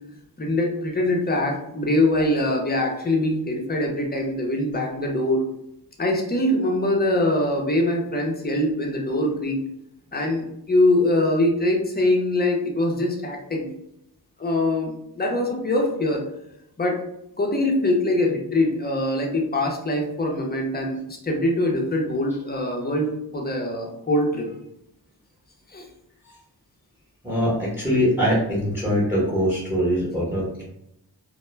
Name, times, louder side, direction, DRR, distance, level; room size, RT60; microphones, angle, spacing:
voice 1, 0.4-5.4 6.0-9.6 10.1-13.7 14.4-16.2 16.8-17.0 17.4-24.5 25.7-25.9, left 1 dB, 25° left, 0 dB, 0.6 m, -23 dB
voice 2, 27.2-30.6, equal, 5° right, -4 dB, 0.9 m, -22 dB
2.1 x 2.1 x 3.2 m, 0.80 s
cardioid pair, 80°, 40 cm